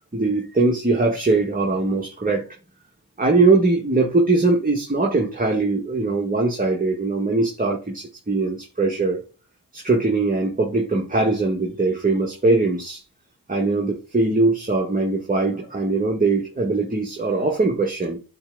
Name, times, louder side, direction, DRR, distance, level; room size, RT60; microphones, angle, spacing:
voice 1, 0.1-2.4 3.2-9.2 9.7-13.0 13.5-18.2, right 3 dB, 25° right, 1.8 m, -21 dB
8.6 x 3.5 x 4.0 m
cardioid pair, 65°, 34 cm